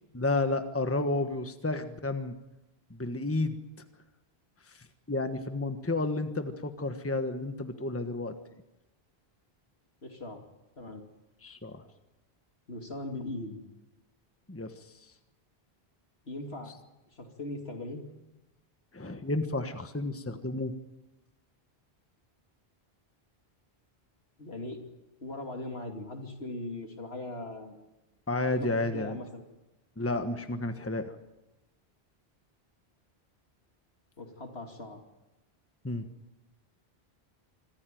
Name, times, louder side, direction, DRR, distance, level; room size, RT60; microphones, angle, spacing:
voice 1, 0.1-2.3 2.9-3.5 5.1-8.3 11.4-11.8 14.5-14.7 18.9-20.7 28.3-29.2 30.0-31.1 35.8-36.1, left 2 dB, 15° left, 8 dB, 1.3 m, -31 dB
voice 2, 10.0-10.4 10.8-11.0 12.7-13.6 16.3-16.7 17.1-18.1 24.4-24.8 25.2-27.8 28.6-29.5 34.2-35.0, left 2 dB, 75° left, 3 dB, 3.1 m, -39 dB
25.5 x 14.5 x 9.3 m, 1.0 s
omnidirectional pair, 1.1 m